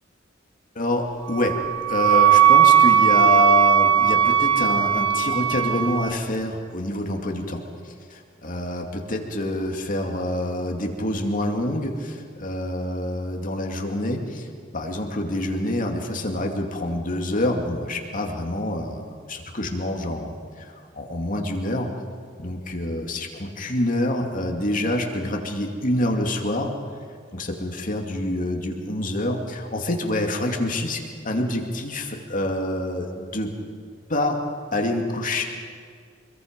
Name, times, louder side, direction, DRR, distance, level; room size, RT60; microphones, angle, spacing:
voice 1, 0.8-1.6 1.9-14.5 14.7-21.9 22.4-26.7 27.3-33.6 34.1-34.4 34.7-35.5, left 1 dB, 45° left, 2 dB, 2.5 m, -26 dB
Wind instrument woodwind instrument, 1.3-6.1, right 9 dB, 70° right, 0.8 m, -18 dB
26.0 x 22.5 x 5.3 m, 2.1 s
head